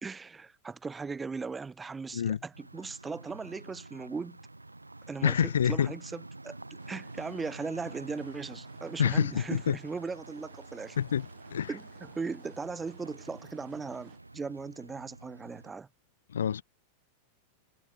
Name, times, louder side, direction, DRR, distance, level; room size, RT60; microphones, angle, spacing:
voice 1, 0.0-4.4 5.1-11.0 11.7-15.9, right 4 dB, 15° right, 2.8 m, -38 dB
sound 1, 2.5-15.7, right 2 dB, 85° right, 3.8 m, -48 dB
voice 2, 5.2-5.9 9.0-9.8 11.0-11.7 16.3-16.6, left 8 dB, 65° left, 0.5 m, -27 dB
sound 2, 6.8-14.2, right 13 dB, 30° right, 7.8 m, -59 dB
figure-of-eight pair, 90°, 0 cm